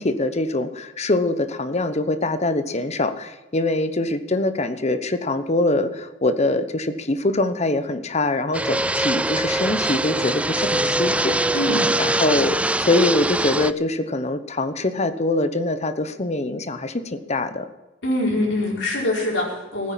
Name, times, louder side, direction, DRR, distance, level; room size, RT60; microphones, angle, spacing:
voice 1, 0.0-11.5 12.0-17.7, left 2 dB, 35° left, 11 dB, 1.0 m, -23 dB
Fixed-wing aircraft airplane, 8.5-13.7, right 1 dB, 5° right, 0.4 m, -22 dB
voice 2, 11.5-11.9 18.0-19.9, left 1 dB, 75° left, -5 dB, 5.0 m, -23 dB
15.5 x 9.7 x 7.6 m, 1.1 s
head